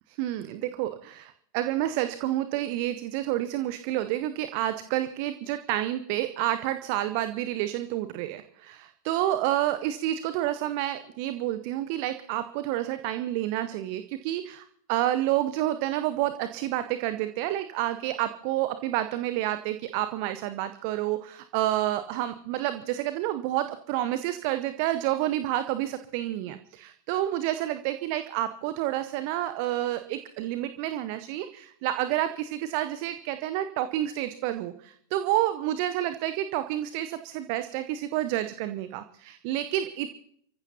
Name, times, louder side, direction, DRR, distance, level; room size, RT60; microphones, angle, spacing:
voice 1, 0.1-40.1, right 13 dB, 45° right, 11 dB, 0.7 m, -29 dB
29.5 x 15.0 x 2.8 m, 0.67 s
figure-of-eight pair, 90°, 0 cm